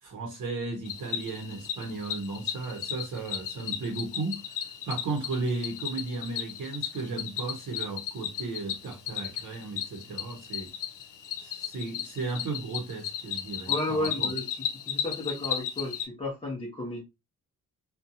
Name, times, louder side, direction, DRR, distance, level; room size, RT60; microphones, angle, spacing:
voice 1, 0.0-10.7 11.4-14.3, right 3 dB, 70° right, 0.8 m, -35 dB
Cricket, 0.8-16.0, left 9 dB, 70° left, 0.6 m, -35 dB
voice 2, 13.7-14.6 14.9-17.0, left 1 dB, 20° left, 0.6 m, -33 dB
2.5 x 2.2 x 2.7 m
wide cardioid pair, 165°, 32 cm